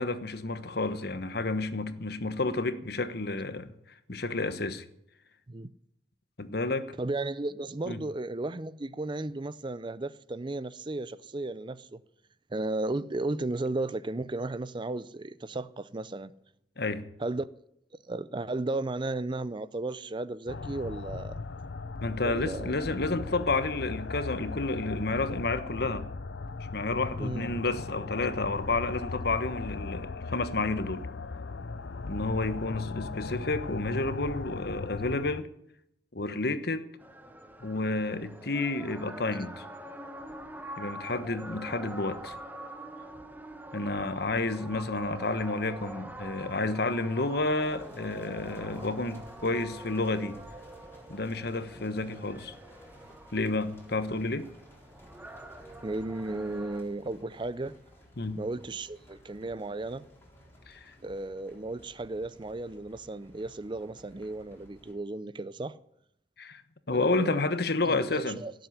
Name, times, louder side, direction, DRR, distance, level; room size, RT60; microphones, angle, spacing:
voice 1, 0.0-3.7 4.1-4.8 6.4-6.9 7.8-8.0 16.8-17.0 22.0-26.1 26.5-31.0 32.1-35.5 36.1-36.8 37.6-39.6 40.8-42.4 43.7-50.4 51.1-52.6 53.3-54.5 58.2-58.4 60.7-60.9 66.4-66.6 66.9-68.4, left 2 dB, 60° left, 1.2 m, -30 dB
voice 2, 7.0-12.0 12.5-16.3 17.2-17.5 18.1-21.3 22.2-22.7 27.2-27.4 55.8-57.8 58.3-60.1 61.0-65.8 66.9-67.4 67.8-68.5, right 2 dB, 25° right, 0.5 m, -34 dB
sound 1, 20.5-35.4, left 4 dB, 80° left, 0.7 m, -38 dB
sound 2, 37.0-56.8, right 1 dB, 10° right, 1.1 m, -45 dB
sound 3, 47.6-64.9, equal, 15° left, 4.0 m, -57 dB
17.0 x 8.0 x 9.7 m
head